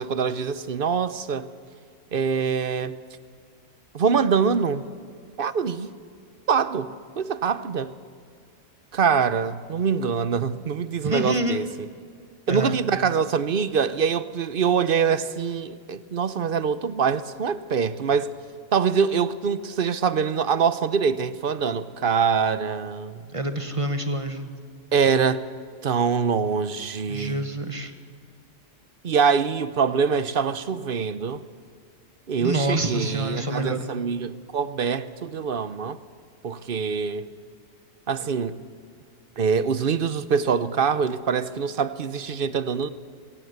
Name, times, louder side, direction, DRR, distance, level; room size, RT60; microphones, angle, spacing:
voice 1, 0.0-1.5 2.1-3.0 3.9-4.8 5.4-5.9 6.5-6.9 7.2-7.9 8.9-11.6 12.5-18.3 18.7-23.2 24.9-25.4 25.8-27.4 29.0-31.4 32.3-36.0 36.4-37.3 38.1-38.6 39.4-42.9, right 6 dB, 50° right, 0.9 m, -24 dB
voice 2, 11.0-11.6 12.5-12.8 23.3-24.5 27.1-27.9 32.4-33.9, right 1 dB, 25° right, 1.3 m, -27 dB
22.5 x 17.0 x 8.1 m
omnidirectional pair, 1.3 m